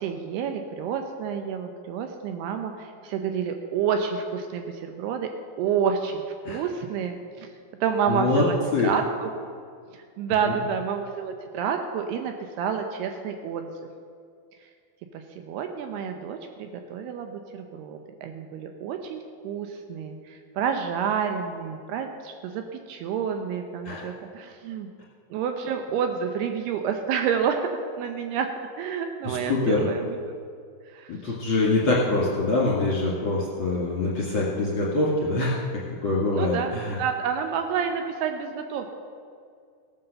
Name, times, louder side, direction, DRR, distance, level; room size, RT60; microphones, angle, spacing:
voice 1, 0.0-5.3 5.6-7.5 7.8-8.6 8.8-9.3 9.9-13.7 15.1-24.9 25.3-27.7 28.0-28.5 28.8-30.2 30.9-31.4 36.3-38.9, right 7 dB, 80° right, 5 dB, 2.7 m, -29 dB
voice 2, 8.1-8.4 8.7-8.9 23.8-24.1 29.2-29.9 31.1-37.0, left 2 dB, 40° left, -6 dB, 2.1 m, -24 dB
16.5 x 9.5 x 6.8 m, 2.2 s
omnidirectional pair, 4.9 m